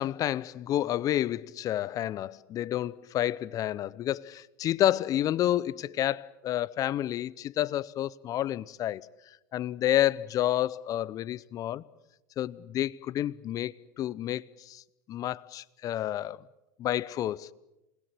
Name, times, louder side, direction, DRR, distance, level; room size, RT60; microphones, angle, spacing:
voice 1, 0.0-9.0 9.5-11.8 12.4-14.8 15.1-16.4 16.8-17.5, left 12 dB, 40° left, 0.8 m, -29 dB
27.5 x 20.5 x 7.9 m
hypercardioid pair, 90°, 9 cm